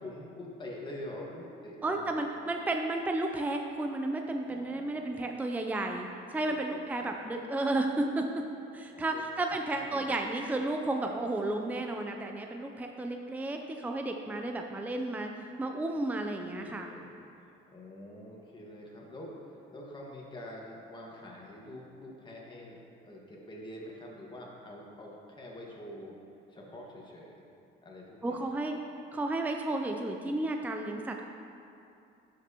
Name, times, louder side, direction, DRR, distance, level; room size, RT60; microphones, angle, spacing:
voice 1, 0.0-2.3 4.5-5.4 6.5-7.2 8.9-9.3 9.5-10.1 16.2-17.1 17.4-26.2 26.5-27.5 27.8-28.6, left 1 dB, 20° left, -3 dB, 1.6 m, -46 dB
voice 2, 1.8-8.4 8.7-15.3 15.6-16.9 28.2-28.7 29.1-31.2, right 2 dB, 10° right, 3 dB, 0.5 m, -32 dB
12.0 x 6.1 x 2.9 m, 2.6 s
cardioid pair, 105°, 21 cm